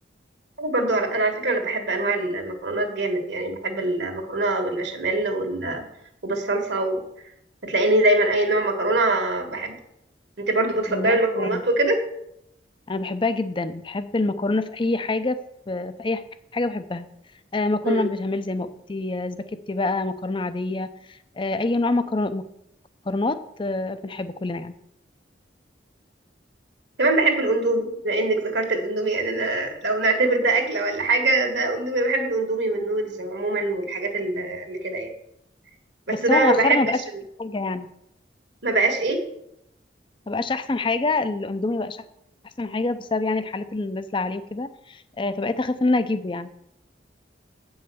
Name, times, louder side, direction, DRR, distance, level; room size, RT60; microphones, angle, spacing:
voice 1, 0.6-5.8 6.2-7.0 7.6-9.7 10.4-12.0 17.8-18.0 27.0-35.1 36.1-36.8 37.1-37.2 38.6-39.2, right 2 dB, 65° right, 4 dB, 1.7 m, -23 dB
voice 2, 10.9-11.6 12.9-15.4 15.7-16.2 16.5-17.1 17.5-22.5 23.1-24.7 36.1-37.0 37.4-37.9 40.3-42.0 42.6-46.5, left 2 dB, 25° left, 12 dB, 0.5 m, -26 dB
8.4 x 5.5 x 6.9 m, 0.79 s
head